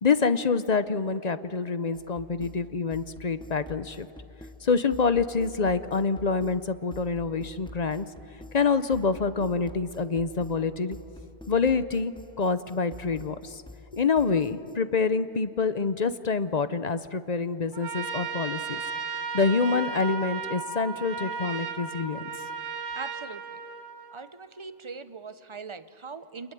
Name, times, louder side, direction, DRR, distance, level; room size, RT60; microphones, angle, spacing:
voice 1, 0.0-4.1 4.6-8.1 8.5-11.0 11.5-13.6 13.9-18.8 19.3-22.2, left 4 dB, 40° left, 13 dB, 0.8 m, -26 dB
sound 1, 1.9-14.8, left 1 dB, 5° left, 0.9 m, -47 dB
Trumpet, 17.7-24.3, right 5 dB, 70° right, 1.6 m, -35 dB
voice 2, 22.9-23.6 24.1-26.5, right 4 dB, 30° right, 12 dB, 0.8 m, -41 dB
27.5 x 21.5 x 9.9 m, 2.8 s
omnidirectional pair, 1.2 m